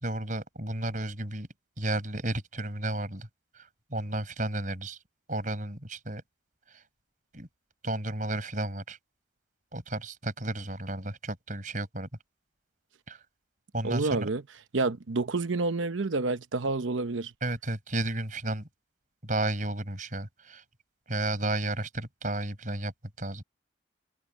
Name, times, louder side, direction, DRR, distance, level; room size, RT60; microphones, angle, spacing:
voice 1, 0.0-1.5 1.8-3.3 3.5-5.0 5.3-6.2 6.7-6.8 7.3-7.5 7.8-9.0 9.7-12.1 13.1-13.2 13.7-14.3 17.4-18.7 19.2-20.6 21.1-22.9 23.2-23.4, right 1 dB, 45° right, 5.9 m, -32 dB
voice 2, 13.8-14.4 14.7-17.3, right 3 dB, 90° right, 0.9 m, -29 dB
head